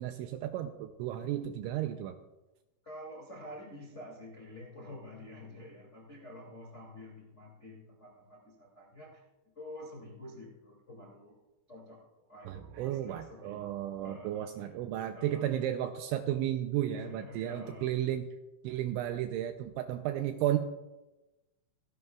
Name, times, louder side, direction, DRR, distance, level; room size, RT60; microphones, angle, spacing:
voice 1, 0.0-2.2 12.5-18.2 18.6-20.6, right 12 dB, 85° right, 7 dB, 2.7 m, -33 dB
voice 2, 2.8-9.2 9.5-11.4 11.7-14.7 15.1-15.8 16.9-18.1, left 1 dB, 60° left, -2 dB, 0.7 m, -48 dB
27.5 x 11.0 x 2.3 m, 1.0 s
omnidirectional pair, 5.9 m